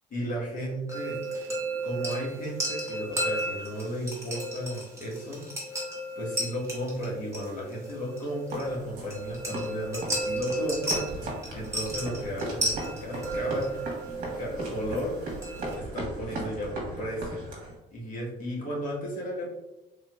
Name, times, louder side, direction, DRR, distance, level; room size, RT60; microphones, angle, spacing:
voice 1, 0.1-1.2 1.8-5.4 6.1-13.7 14.4-15.2 15.7-17.4 17.9-19.5, equal, 50° left, -4 dB, 1.3 m, -34 dB
sound 1, 0.9-15.8, right 1 dB, 15° right, 1.0 m, -34 dB
sound 2, 8.5-17.8, right 1 dB, 55° right, 1.2 m, -37 dB
3.5 x 2.9 x 2.3 m, 0.99 s
cardioid pair, 110°, 17 cm